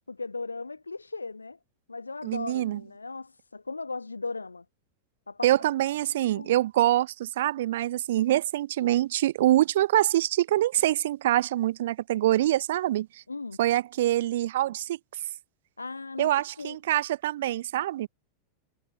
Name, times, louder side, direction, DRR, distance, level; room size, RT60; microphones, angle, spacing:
voice 1, 0.1-1.6 1.9-4.6 5.3-5.7 6.3-6.5 13.3-13.6 15.8-16.8, left 3 dB, 80° left, 0.9 m, -37 dB
voice 2, 2.2-2.8 5.4-13.1 13.6-15.0 16.2-18.1, right 14 dB, 55° right, 0.3 m, -25 dB
figure-of-eight pair, 90°, 0 cm